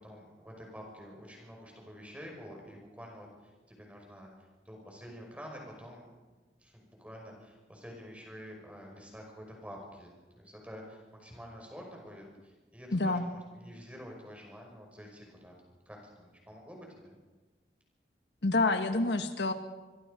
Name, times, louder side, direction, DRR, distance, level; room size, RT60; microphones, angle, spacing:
voice 1, 0.0-4.3 4.6-6.1 6.6-10.1 10.3-15.5 15.9-17.1, equal, 10° right, 0 dB, 5.6 m, -48 dB
voice 2, 12.9-13.2 18.4-19.5, left 2 dB, 75° left, 7 dB, 1.5 m, -27 dB
26.0 x 21.5 x 5.2 m, 1.3 s
head